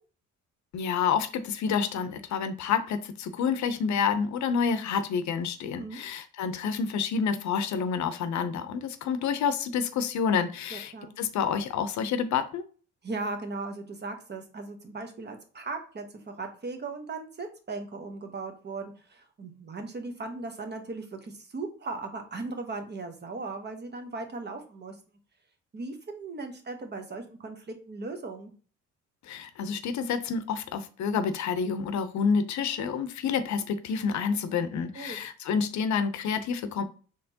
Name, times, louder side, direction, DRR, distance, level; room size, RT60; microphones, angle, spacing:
voice 1, 0.7-12.6 29.2-36.8, left 6 dB, 70° left, 10 dB, 0.6 m, -28 dB
voice 2, 10.7-11.1 13.0-25.0 25.7-28.5 34.9-35.2, right 3 dB, 35° right, 5 dB, 0.9 m, -38 dB
4.2 x 3.1 x 2.8 m, 0.39 s
cardioid pair, 90°, 30 cm